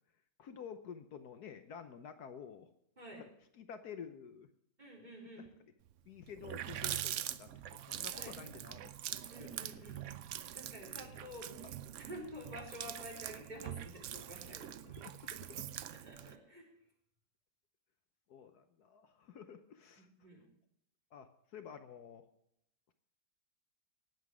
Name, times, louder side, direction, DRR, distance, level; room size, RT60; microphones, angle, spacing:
voice 1, 0.4-2.7 3.2-3.3 3.5-4.5 5.4-5.5 6.0-8.9 9.4-9.7 10.8-11.2 14.9-15.6 18.3-20.1 21.1-22.3, left 7 dB, 70° left, 9 dB, 1.3 m, -51 dB
voice 2, 4.8-5.5 8.1-8.4 9.3-10.0 10.5-11.5 12.0-14.9 15.9-16.7 20.1-20.4, equal, 25° right, 0 dB, 3.9 m, -50 dB
Water tap faucet, 5.9-6.0 6.3-16.4, right 11 dB, 70° right, 0.7 m, -43 dB
19.0 x 7.9 x 4.9 m, 0.77 s
omnidirectional pair, 1.8 m